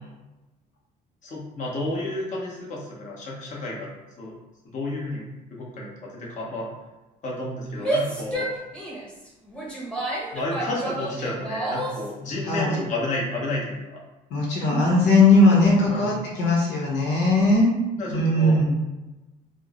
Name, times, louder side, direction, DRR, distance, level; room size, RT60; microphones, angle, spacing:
voice 1, 1.2-3.9 4.2-4.3 4.7-5.2 5.5-6.7 7.2-8.5 10.3-14.0 15.8-16.1 17.9-18.6, left 2 dB, 45° left, -4 dB, 1.1 m, -31 dB
Female speech woman speaking / Yell, 7.7-12.1, right 1 dB, 5° left, 1.0 m, -30 dB
voice 2, 12.5-12.8 14.3-17.7 18.1-18.7, left 2 dB, 80° left, -3 dB, 1.0 m, -19 dB
4.5 x 2.1 x 3.0 m, 1.1 s
cardioid pair, 110°, 17 cm